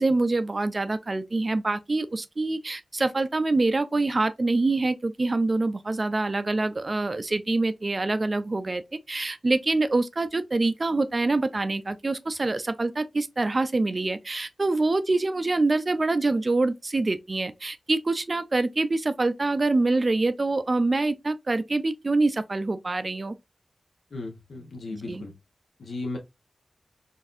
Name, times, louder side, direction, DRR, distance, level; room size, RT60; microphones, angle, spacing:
voice 1, 0.0-8.8 9.1-23.3 25.1-25.2, right 2 dB, 35° right, 0.3 m, -25 dB
voice 2, 24.1-25.3 25.8-26.2, left 2 dB, 85° left, 0.9 m, -35 dB
4.0 x 2.6 x 2.5 m
wide cardioid pair, 130°, 0 cm